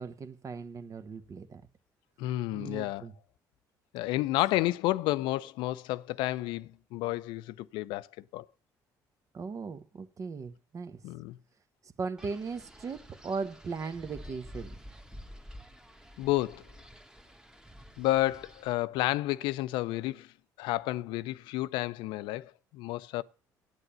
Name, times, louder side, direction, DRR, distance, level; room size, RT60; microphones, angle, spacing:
voice 1, 0.0-1.6 2.5-3.1 9.3-11.0 12.0-14.8, right 4 dB, 45° right, 1.1 m, -38 dB
voice 2, 2.2-3.0 3.9-8.5 11.0-11.4 16.2-16.7 18.0-20.3 20.6-23.2, left 17 dB, 85° left, 0.5 m, -31 dB
Wind, 12.2-18.7, equal, 10° right, 1.4 m, -50 dB
8.9 x 8.2 x 6.9 m
supercardioid pair, 75°, 8 cm